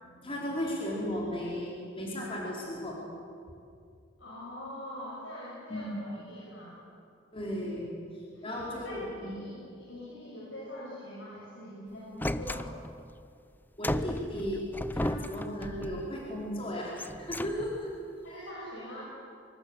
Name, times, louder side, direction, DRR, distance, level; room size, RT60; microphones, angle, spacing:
voice 1, 0.0-3.0 5.7-6.0 7.3-9.3 13.8-14.7 14.9-17.9, equal, 30° left, -3 dB, 4.7 m, -35 dB
voice 2, 4.2-6.8 8.3-12.7 18.2-19.1, left 1 dB, 80° left, -6 dB, 6.5 m, -43 dB
sound 1, 12.2-13.1 13.8-16.2 16.9-18.0, left 1 dB, 10° left, 0.6 m, -35 dB
25.0 x 24.0 x 8.3 m, 2.4 s
head